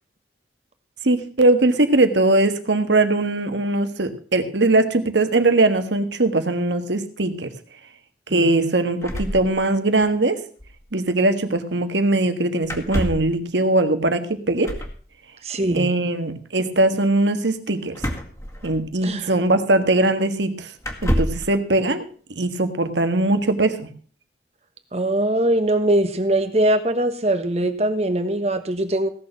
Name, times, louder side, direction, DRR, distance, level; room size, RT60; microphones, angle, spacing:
voice 1, 1.0-7.5 8.3-10.4 10.9-14.7 15.7-18.0 18.6-20.7 21.0-22.0 22.3-23.9, right 2 dB, 90° right, 8 dB, 1.6 m, -20 dB
voice 2, 8.3-8.7 15.4-15.9 19.0-19.4 24.9-29.1, right 1 dB, 35° right, 9 dB, 1.3 m, -22 dB
sound 1, 9.0-10.1 10.3-10.4 10.6-10.8 12.6-13.4 14.6-15.0 17.9-19.1 20.0-20.1 20.8-21.5, equal, 20° left, 2.0 m, -27 dB
17.0 x 6.8 x 5.8 m, 0.44 s
head